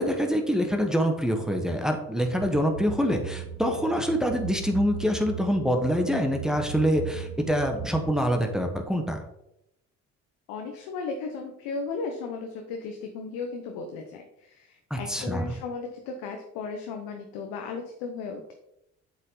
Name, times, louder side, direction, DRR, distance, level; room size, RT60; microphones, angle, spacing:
voice 1, 0.0-9.2 14.9-15.4, equal, ahead, 3 dB, 1.5 m, -25 dB
sound 1, 2.3-8.2, right 8 dB, 80° right, 1.1 m, -38 dB
voice 2, 10.5-18.5, left 4 dB, 80° left, 3 dB, 1.0 m, -35 dB
7.6 x 6.2 x 4.0 m, 0.82 s
hypercardioid pair, 60°, 35 cm